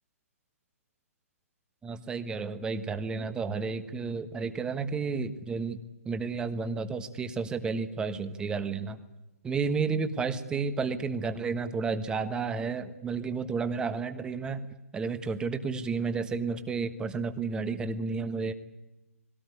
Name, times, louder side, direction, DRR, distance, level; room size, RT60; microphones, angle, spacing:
voice 1, 1.8-9.0 9.4-14.6 14.9-18.5, right 4 dB, 10° right, 10 dB, 1.3 m, -31 dB
21.5 x 17.5 x 9.7 m, 1.0 s
figure-of-eight pair, 135°, 8 cm